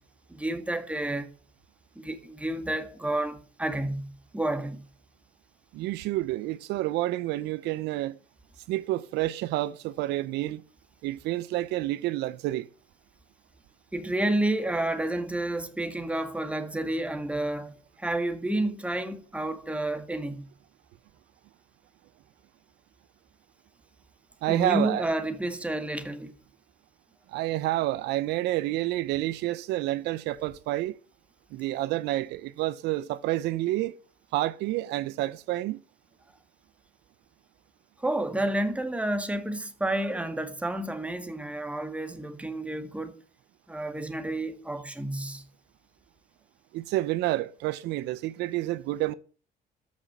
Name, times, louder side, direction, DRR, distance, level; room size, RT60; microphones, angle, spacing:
voice 1, 0.3-1.3 2.0-4.8 13.9-20.5 24.5-26.4 38.0-43.2 43.7-45.4, right 1 dB, 5° right, 2.0 m, -30 dB
voice 2, 5.7-8.2 8.7-10.6 11.0-12.7 24.4-25.1 27.3-31.0 31.5-33.9 34.3-35.8 46.7-49.1, right 16 dB, 85° right, 0.7 m, -29 dB
13.5 x 6.2 x 8.0 m
cardioid pair, 110°, 17 cm